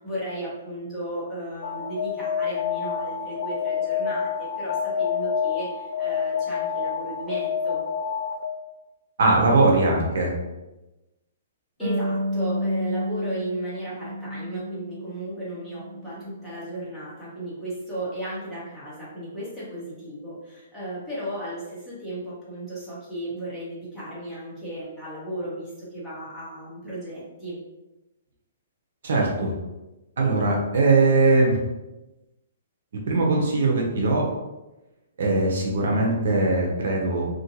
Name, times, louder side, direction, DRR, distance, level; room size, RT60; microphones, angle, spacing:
voice 1, 0.0-7.8 11.8-27.6, right 1 dB, 5° left, -11 dB, 1.0 m, -35 dB
Alarm, 1.6-8.7, left 7 dB, 65° left, 0.3 m, -28 dB
voice 2, 9.2-10.3 29.0-29.5 30.2-31.6 33.1-34.3 35.2-37.3, right 2 dB, 65° right, -1 dB, 0.6 m, -20 dB
Harp, 11.8-15.2 15.5-16.6, equal, 50° right, 1.2 m, -31 dB
2.5 x 2.2 x 2.8 m, 1.0 s
hypercardioid pair, 165°, 0 cm